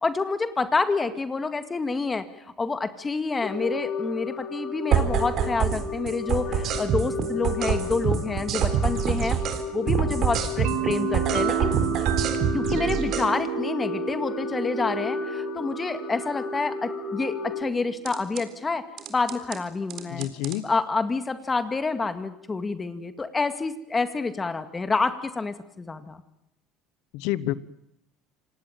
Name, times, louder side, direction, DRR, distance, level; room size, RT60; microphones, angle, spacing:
voice 1, 0.0-2.3 2.6-9.4 9.7-11.8 12.5-18.8 19.1-20.3 20.6-26.2, left 4 dB, 20° left, 10 dB, 2.0 m, -28 dB
sound 1, 3.4-17.6, left 4 dB, 40° left, 4.7 m, -33 dB
sound 2, 4.9-5.8 6.1-9.6 9.9-13.3 18.0-18.4 19.0-19.6 19.9-20.6, right 8 dB, 55° right, 4.0 m, -26 dB
sound 3, 10.6-18.3, right 11 dB, 85° right, 2.4 m, -32 dB
voice 2, 20.1-20.7 27.1-27.5, left 15 dB, 75° left, 18 dB, 1.2 m, -28 dB
26.5 x 18.5 x 9.2 m, 0.79 s
supercardioid pair, 100°, 0 cm